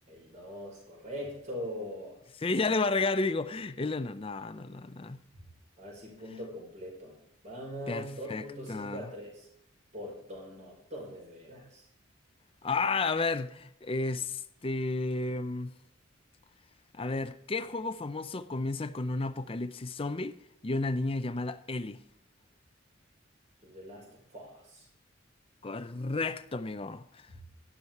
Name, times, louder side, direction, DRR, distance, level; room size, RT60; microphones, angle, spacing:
voice 1, 0.1-2.2 5.8-7.2 7.4-9.5 9.9-11.8 23.6-24.9 27.3-27.4, equal, 35° right, 5.2 m, -42 dB
voice 2, 2.4-5.2 7.9-9.0 12.6-15.7 16.9-20.3 20.6-22.0 25.6-27.0, left 3 dB, 30° left, 0.6 m, -32 dB
12.0 x 11.5 x 4.6 m
head